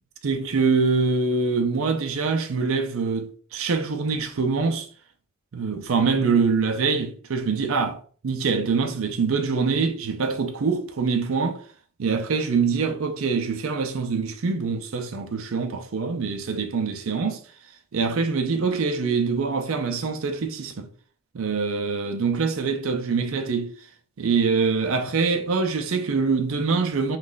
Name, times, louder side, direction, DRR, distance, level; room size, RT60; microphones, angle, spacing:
voice 1, 0.2-4.9 5.5-11.6 12.0-17.4 17.9-20.9 21.3-23.7 24.2-27.2, right 4 dB, 70° right, 0.5 m, -24 dB
3.1 x 2.3 x 3.8 m
head